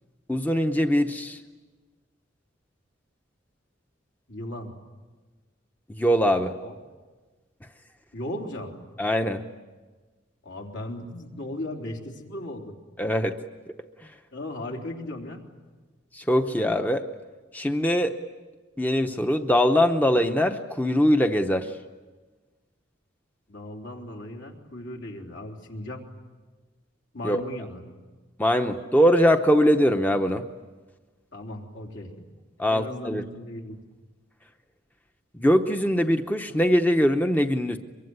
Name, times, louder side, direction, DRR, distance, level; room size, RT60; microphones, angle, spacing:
voice 1, 0.3-1.4 5.9-6.6 9.0-9.4 13.0-13.4 16.1-17.1 17.5-18.2 18.8-21.8 27.2-27.4 28.4-30.5 32.6-33.2 35.3-37.8, equal, 10° left, 6 dB, 0.8 m, -22 dB
voice 2, 4.3-4.7 6.6-6.8 8.1-8.7 10.4-12.7 14.3-15.4 23.5-26.0 27.1-27.8 31.3-32.1 32.7-33.8, left 1 dB, 70° left, 0 dB, 3.5 m, -36 dB
23.5 x 23.5 x 9.6 m, 1.3 s
head